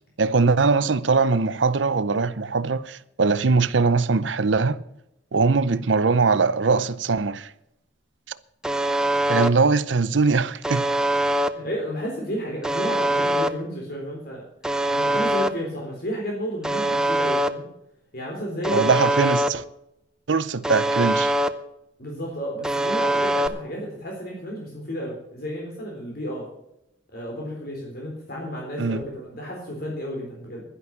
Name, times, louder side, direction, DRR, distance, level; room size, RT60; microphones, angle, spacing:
voice 1, 0.2-4.8 5.3-7.5 9.3-10.8 18.7-19.6 20.3-21.3 28.8-29.0, right 4 dB, 80° right, 0.7 m, -21 dB
Alarm, 8.6-9.5 10.6-11.5 12.6-13.5 14.6-15.5 16.6-17.5 18.6-19.5 20.6-21.5 22.6-23.5, right 1 dB, 5° right, 0.6 m, -23 dB
voice 2, 11.5-14.4 14.9-17.6 18.1-19.0 22.0-26.5 27.1-30.6, equal, 55° left, 3.8 m, -32 dB
11.5 x 11.0 x 5.9 m
head